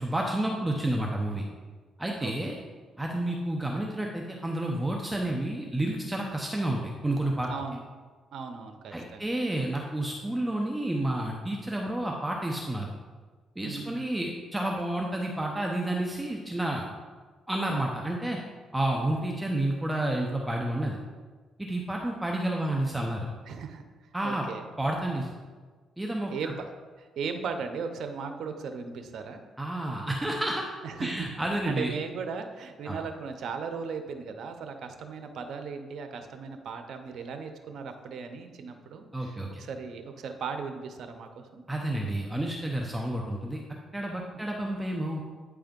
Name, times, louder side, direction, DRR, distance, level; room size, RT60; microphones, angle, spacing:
voice 1, 0.0-1.4 2.0-2.6 3.0-7.5 8.9-12.9 13.6-16.9 17.5-18.4 18.7-21.0 21.6-23.3 24.1-24.4 24.8-25.3 26.0-26.3 29.6-30.6 31.0-31.9 32.9-33.0 39.1-39.6 41.7-43.6 43.9-45.3, right 1 dB, 10° right, 0 dB, 0.7 m, -30 dB
voice 2, 2.2-2.5 7.5-7.8 8.3-9.3 13.6-14.0 23.5-23.8 24.2-24.7 26.3-29.4 30.8-41.6, right 5 dB, 70° right, 7 dB, 0.7 m, -37 dB
8.9 x 3.5 x 5.2 m, 1.5 s
cardioid pair, 90°, 0 cm